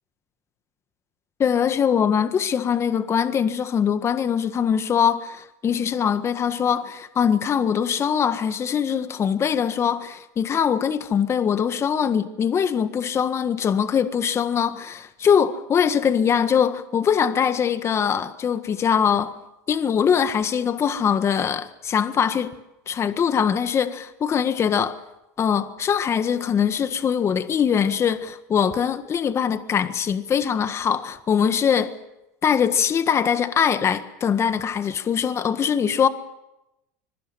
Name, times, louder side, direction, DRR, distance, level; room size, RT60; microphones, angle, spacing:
voice 1, 1.4-19.3 19.7-22.5 22.9-25.0 25.4-31.9 32.4-36.1, left 7 dB, 30° left, 1.6 m, -22 dB
25.5 x 22.5 x 7.6 m
supercardioid pair, 105°, 9 cm